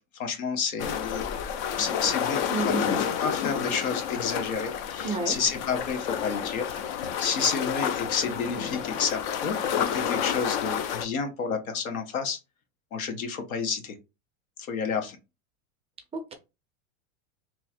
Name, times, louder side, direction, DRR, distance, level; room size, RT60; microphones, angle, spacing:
voice 1, 0.1-1.4 1.8-6.8 7.2-12.4 12.9-13.9 14.6-15.2, left 5 dB, 90° left, 1.2 m, -30 dB
sound 1, 0.8-11.1, left 8 dB, 45° left, 0.5 m, -30 dB
voice 2, 2.5-3.1 5.0-5.4 16.1-16.3, right 4 dB, 15° right, 0.5 m, -31 dB
3.0 x 2.4 x 4.3 m
supercardioid pair, 140°, 41 cm